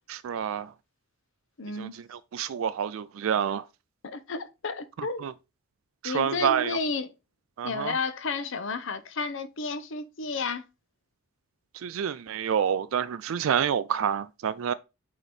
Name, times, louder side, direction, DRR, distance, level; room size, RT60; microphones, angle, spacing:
voice 1, 0.1-0.7 1.8-3.6 5.2-5.3 6.0-6.8 7.6-7.9 11.7-14.7, right 8 dB, 70° right, 0.4 m, -28 dB
voice 2, 1.6-2.0 4.0-5.3 6.0-7.1 7.6-10.6, left 4 dB, 60° left, 0.7 m, -32 dB
8.0 x 3.0 x 4.1 m
head